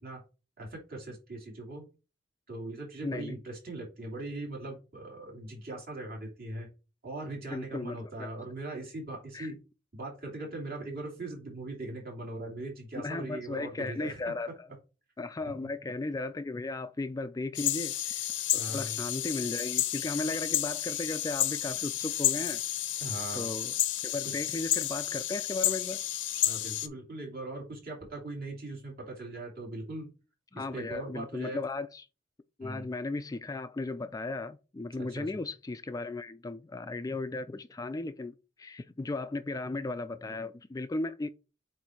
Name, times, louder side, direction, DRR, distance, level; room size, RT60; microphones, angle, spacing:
voice 1, 0.6-1.9 2.5-6.7 7.0-9.6 9.9-14.2 18.6-19.0 23.0-23.5 24.2-24.4 26.4-30.1 30.5-31.6 32.6-32.9 35.0-35.3, right 2 dB, 55° right, 2.7 m, -40 dB
voice 2, 3.0-3.4 7.5-8.3 9.3-9.5 13.0-14.7 15.2-22.6 23.3-23.7 24.0-26.0 30.5-32.0 32.6-41.3, left 2 dB, 20° left, 0.3 m, -36 dB
sound 1, 17.5-26.9, left 13 dB, 80° left, 0.7 m, -31 dB
8.0 x 2.7 x 4.5 m
head